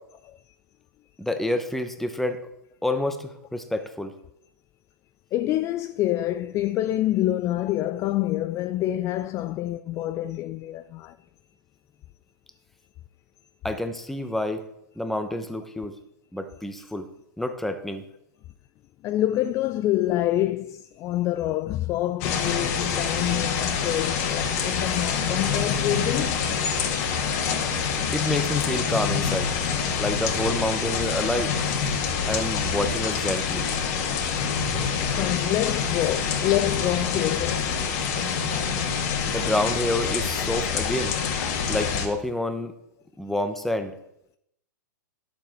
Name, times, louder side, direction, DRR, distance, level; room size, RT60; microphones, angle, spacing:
voice 1, 1.2-2.4 2.8-4.1 13.6-14.6 15.0-15.9 16.3-17.1 17.4-18.0 28.1-29.5 30.0-31.5 32.3-33.7 39.2-41.1 41.7-42.7 43.2-43.9, left 1 dB, ahead, 1.0 m, -28 dB
voice 2, 5.3-11.2 19.0-26.4 34.4-34.5 35.1-37.7 38.0-38.2, left 14 dB, 30° left, 0.3 m, -27 dB
sound 1, 22.2-42.1, left 6 dB, 50° left, 2.0 m, -26 dB
11.5 x 6.9 x 4.6 m
hypercardioid pair, 120°, 11 cm